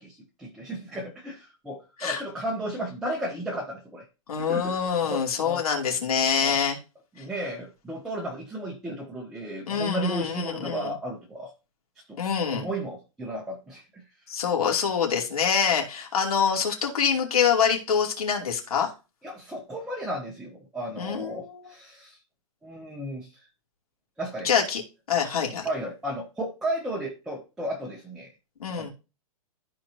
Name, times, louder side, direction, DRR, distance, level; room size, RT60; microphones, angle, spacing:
voice 1, 0.0-4.0 4.4-5.6 6.3-6.6 7.2-11.5 12.1-12.2 12.5-14.0 19.2-22.2 22.6-23.5 24.2-24.5 25.6-28.3 28.8-28.9, right 1 dB, ahead, -2 dB, 0.5 m, -34 dB
voice 2, 4.3-6.8 9.7-10.9 12.2-12.6 14.3-18.9 21.0-21.6 24.4-24.8 25.1-25.7 28.6-28.9, left 7 dB, 85° left, 1 dB, 2.7 m, -25 dB
13.5 x 4.5 x 2.7 m, 0.30 s
hypercardioid pair, 175°, 18 cm